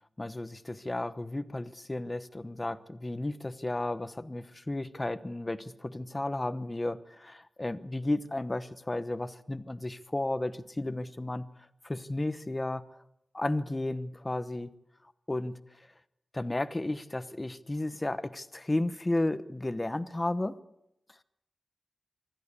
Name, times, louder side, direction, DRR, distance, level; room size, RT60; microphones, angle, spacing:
voice 1, 0.2-11.5 11.8-12.8 13.3-14.7 15.3-15.6 16.3-20.6, left 2 dB, 20° left, 12 dB, 1.0 m, -33 dB
25.0 x 13.5 x 8.3 m, 0.83 s
wide cardioid pair, 125°, 0 cm